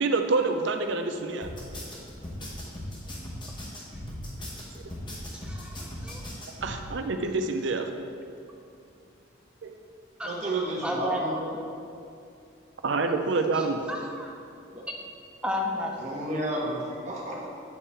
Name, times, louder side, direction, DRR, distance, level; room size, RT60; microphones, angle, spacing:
voice 1, 0.0-1.5 6.6-7.9 9.6-9.7 12.8-13.8, right 3 dB, 75° right, 6 dB, 0.5 m, -27 dB
sound 1, 1.4-6.7, left 1 dB, 25° left, 1.0 m, -38 dB
voice 2, 5.3-6.2 10.2-10.3 10.8-11.2 13.5-14.3 15.4-15.9, left 1 dB, 5° right, -1 dB, 0.6 m, -33 dB
voice 3, 10.2-11.6 14.7-14.8 16.0-17.5, right 1 dB, 35° right, -4 dB, 1.2 m, -31 dB
8.6 x 3.7 x 4.2 m, 2.5 s
head